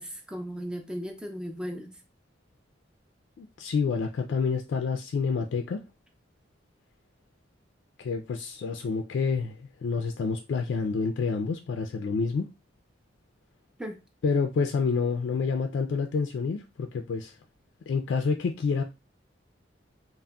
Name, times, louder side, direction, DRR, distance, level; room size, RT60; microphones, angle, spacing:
voice 1, 0.0-1.9 13.8-14.0, equal, 5° right, 0.4 m, -36 dB
voice 2, 3.4-5.8 8.0-12.5 14.2-17.3 17.9-18.8, left 5 dB, 70° left, 0.3 m, -28 dB
3.6 x 2.0 x 2.2 m
head